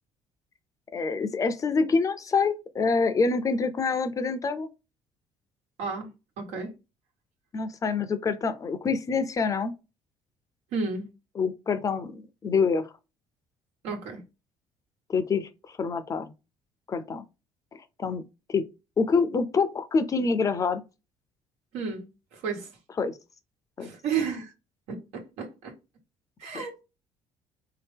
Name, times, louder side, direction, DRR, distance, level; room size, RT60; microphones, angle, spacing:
voice 1, 0.9-4.7 7.5-9.7 11.4-12.9 15.1-16.3 16.9-17.2 18.0-18.2 18.5-18.6 19.0-20.8 23.0-23.2 23.8-23.9 26.5-26.6, left 4 dB, 30° left, 0.5 m, -26 dB
voice 2, 6.4-6.7 10.7-11.1 13.8-14.2 21.7-22.7 23.8-24.5 24.9-25.7 26.4-26.8, right 5 dB, 85° right, 1.3 m, -32 dB
3.7 x 2.8 x 3.5 m
cardioid pair, 110°, 11 cm